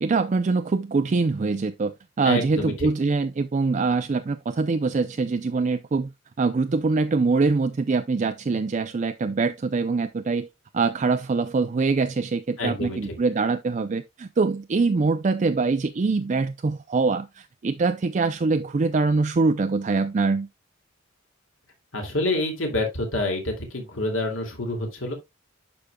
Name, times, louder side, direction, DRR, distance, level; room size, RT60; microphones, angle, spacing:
voice 1, 0.0-6.1 6.4-10.5 10.7-20.5, right 4 dB, 35° right, 0.4 m, -24 dB
voice 2, 2.2-2.9 12.6-13.2 21.9-25.1, left 2 dB, 70° left, 2.4 m, -27 dB
11.5 x 5.0 x 2.2 m
head